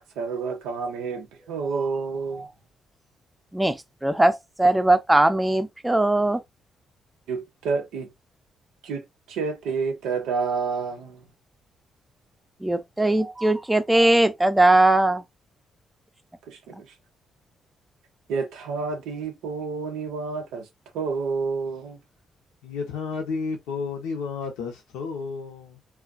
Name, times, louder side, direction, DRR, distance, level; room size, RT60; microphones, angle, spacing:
voice 1, 0.2-2.5 7.3-8.1 8.8-11.3 16.5-16.9 18.3-20.7 20.9-22.0, right 5 dB, 85° right, 0.6 m, -29 dB
voice 2, 4.0-6.4 12.6-15.2, right 1 dB, 10° right, 0.4 m, -20 dB
voice 3, 22.6-25.8, left 5 dB, 85° left, 0.7 m, -32 dB
2.4 x 2.2 x 2.4 m
supercardioid pair, 60°, 0 cm